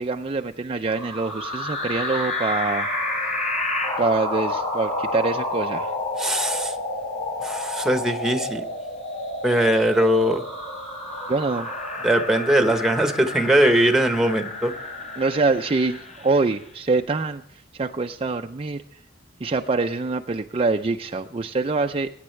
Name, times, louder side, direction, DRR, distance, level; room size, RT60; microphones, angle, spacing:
voice 1, 0.0-2.9 4.0-5.9 11.3-11.7 15.2-17.4 17.7-18.8 19.4-22.1, right 3 dB, 30° right, 5 dB, 0.5 m, -24 dB
sound 1, 0.9-16.6, left 2 dB, 40° left, 4.1 m, -30 dB
voice 2, 6.2-6.7 7.4-8.6 9.4-10.4 12.0-14.7, right 1 dB, ahead, 7 dB, 1.0 m, -20 dB
21.5 x 9.5 x 3.3 m, 0.77 s
head